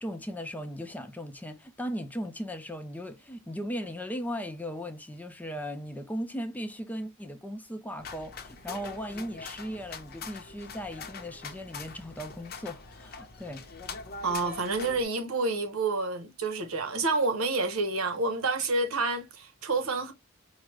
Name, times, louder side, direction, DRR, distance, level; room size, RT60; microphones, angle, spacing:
voice 1, 0.0-13.7, equal, 10° left, 0.5 m, -37 dB
sound 1, 8.0-15.0, left 5 dB, 50° left, 0.7 m, -43 dB
voice 2, 14.2-20.1, right 3 dB, 85° right, 0.9 m, -29 dB
4.8 x 2.1 x 3.1 m
head